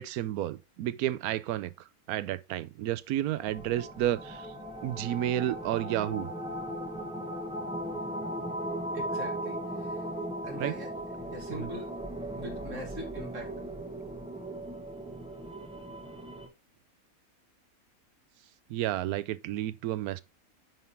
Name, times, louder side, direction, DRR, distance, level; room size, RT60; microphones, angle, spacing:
voice 1, 0.0-1.7 2.1-4.5 4.8-6.3 10.6-10.7 11.6-11.7 18.7-20.2, right 13 dB, 85° right, 1.1 m, -31 dB
sound 1, 3.3-16.5, right 1 dB, 5° right, 0.9 m, -37 dB
voice 2, 8.9-10.0 10.4-10.9 11.3-11.9 12.4-13.5, right 1 dB, 60° right, 2.5 m, -41 dB
9.4 x 3.7 x 4.0 m
omnidirectional pair, 1.5 m